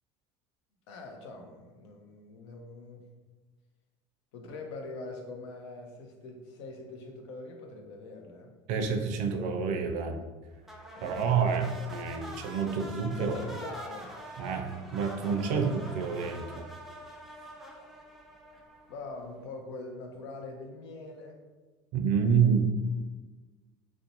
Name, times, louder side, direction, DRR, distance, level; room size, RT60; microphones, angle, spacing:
voice 1, 0.9-3.0 4.3-8.5 10.9-11.2 13.2-14.1 18.9-21.4, left 3 dB, 85° left, 3 dB, 0.5 m, -43 dB
voice 2, 8.7-10.2 11.0-13.4 14.4-16.7 21.9-22.6, right 6 dB, 70° right, 5 dB, 0.4 m, -28 dB
sound 1, 10.6-19.1, right 1 dB, ahead, 0.4 m, -45 dB
2.5 x 2.0 x 2.8 m, 1.3 s
supercardioid pair, 90°, 14 cm